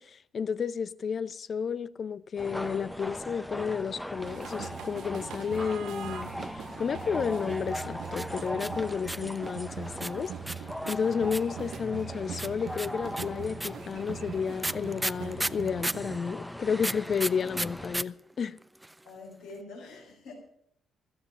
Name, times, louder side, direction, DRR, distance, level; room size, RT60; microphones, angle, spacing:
voice 1, 0.0-18.6, left 6 dB, 45° left, 0.6 m, -32 dB
sound 1, 2.4-18.0, left 1 dB, 5° left, 1.0 m, -40 dB
sound 2, 4.2-16.2, right 10 dB, 65° right, 0.5 m, -42 dB
sound 3, 7.7-9.4 10.0-11.6 12.4-16.1 16.8-18.0 18.3-18.4 18.6-19.1, right 1 dB, 10° right, 0.5 m, -33 dB
voice 2, 19.0-20.3, left 3 dB, 70° left, 4.8 m, -45 dB
14.0 x 14.0 x 5.3 m
figure-of-eight pair, 40°, 0 cm